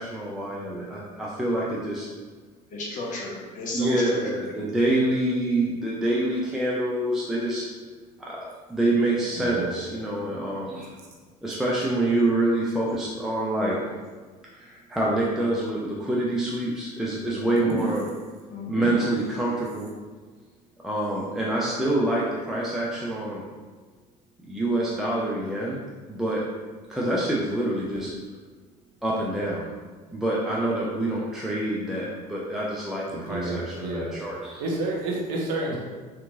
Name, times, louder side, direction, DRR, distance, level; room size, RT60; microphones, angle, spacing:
voice 1, 0.0-2.1 3.7-7.7 8.2-8.4 8.7-11.0 11.4-13.9 14.5-18.0 18.7-19.9 20.8-23.4 24.5-25.8 26.1-26.4 26.9-28.1 29.0-29.7 30.1-34.6 35.7-35.8, right 1 dB, ahead, -5 dB, 0.5 m, -26 dB
voice 2, 2.7-4.5 17.3-17.8 18.5-18.9, left 2 dB, 40° left, -2 dB, 0.9 m, -34 dB
voice 3, 9.4-9.7 33.1-34.1 34.6-35.8, right 2 dB, 60° right, -2 dB, 0.8 m, -29 dB
3.4 x 2.9 x 2.7 m, 1.4 s
figure-of-eight pair, 65°, 21 cm